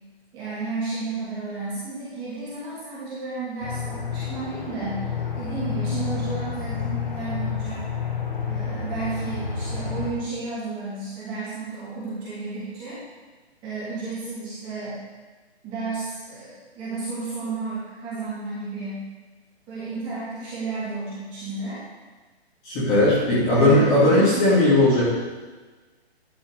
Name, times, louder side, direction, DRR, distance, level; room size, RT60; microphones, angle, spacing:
voice 1, 0.3-5.1 5.3-7.8 8.5-13.0 13.6-15.0 15.6-19.1 19.7-21.8 23.5-24.5, right 3 dB, 15° right, -11 dB, 2.8 m, -32 dB
Aircraft, 3.6-10.1, left 6 dB, 45° left, 1.8 m, -30 dB
voice 2, 22.6-25.1, left 1 dB, 15° left, -10 dB, 2.9 m, -18 dB
11.5 x 5.5 x 5.0 m, 1.3 s
hypercardioid pair, 165°, 33 cm